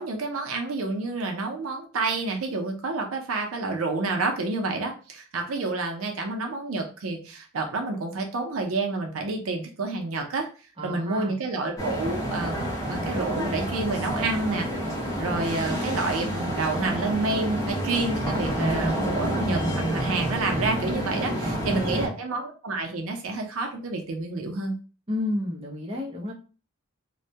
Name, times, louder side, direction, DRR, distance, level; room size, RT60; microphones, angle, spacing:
voice 1, 0.0-10.5 10.8-12.6 12.9-24.8, right 3 dB, 85° right, 3 dB, 0.6 m, -29 dB
voice 2, 10.8-11.4 21.4-22.0 25.1-26.3, left 1 dB, 25° right, -2 dB, 0.6 m, -31 dB
sound 1, 11.8-22.1, equal, 15° left, 0.7 m, -28 dB
2.2 x 2.1 x 2.7 m, 0.35 s
head